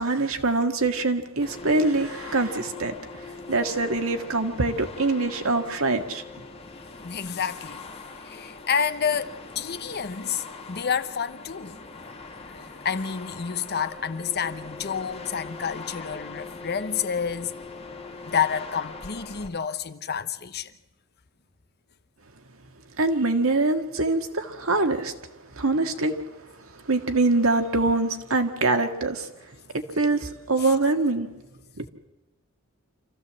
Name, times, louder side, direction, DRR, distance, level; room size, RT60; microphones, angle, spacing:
voice 1, 0.0-6.2 23.0-25.1 25.5-26.2 26.9-29.3 29.7-31.3 31.8-31.9, right 2 dB, 70° right, 1.7 m, -24 dB
sound 1, 1.4-19.5, left 3 dB, 25° left, 1.6 m, -41 dB
voice 2, 7.0-7.8 8.2-11.8 12.8-17.5 18.3-20.7 30.6-30.7, left 7 dB, 50° left, 0.9 m, -29 dB
26.5 x 15.0 x 7.5 m
head